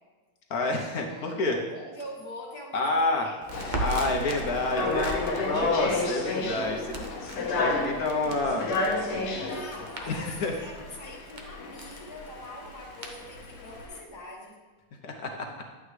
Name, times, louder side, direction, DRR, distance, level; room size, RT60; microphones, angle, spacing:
voice 1, 0.5-1.6 2.7-3.3 3.8-7.0 7.4-8.7 10.1-10.5 15.0-15.5, left 2 dB, 55° left, 1 dB, 1.1 m, -28 dB
voice 2, 1.0-1.4 1.7-3.4 9.2-14.5, left 1 dB, 15° left, -3 dB, 1.7 m, -43 dB
Crackle, 3.4-13.8, right 2 dB, 50° right, 0.5 m, -40 dB
sound 1, 3.5-14.0, left 2 dB, 90° left, 2.0 m, -32 dB
11.0 x 8.8 x 3.2 m, 1.3 s
omnidirectional pair, 2.4 m